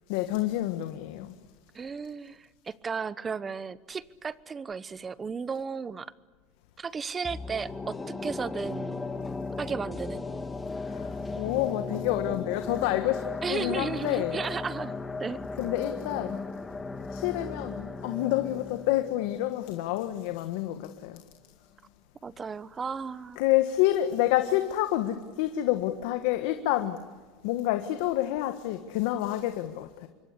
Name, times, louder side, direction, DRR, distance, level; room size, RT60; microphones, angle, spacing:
voice 1, 0.1-1.3 10.9-14.4 15.6-16.4 17.1-21.2 23.4-27.0 27.4-30.1, left 14 dB, 75° left, 1.7 m, -28 dB
voice 2, 1.7-6.1 6.8-8.0 8.2-9.0 9.6-10.2 13.4-14.9 15.2-15.4 22.2-23.4, right 5 dB, 20° right, 1.0 m, -34 dB
sound 1, 7.2-20.3 20.7-20.8, left 3 dB, 15° left, 2.0 m, -36 dB
26.5 x 23.5 x 8.5 m
supercardioid pair, 125°, 0 cm